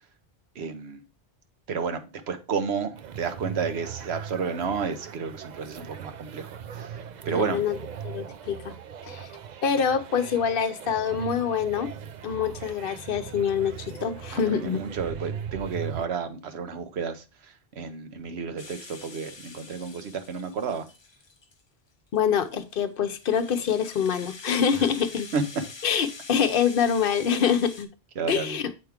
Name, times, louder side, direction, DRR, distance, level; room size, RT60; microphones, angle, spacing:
voice 1, 0.5-1.0 1.7-7.6 14.3-20.9 24.7-24.9 25.3-25.6 28.2-28.6, right 5 dB, 80° right, 1.1 m, -31 dB
sound 1, 3.0-16.1, right 8 dB, 55° right, 0.5 m, -39 dB
voice 2, 7.3-7.8 8.0-8.8 9.0-9.3 9.6-11.9 12.2-14.8 22.1-25.3 25.8-27.9 28.3-28.6, left 7 dB, 60° left, 0.8 m, -25 dB
Rattle (instrument), 18.6-21.6 22.1-27.9, left 4 dB, 30° left, 0.6 m, -45 dB
7.7 x 4.6 x 3.5 m
omnidirectional pair, 1.1 m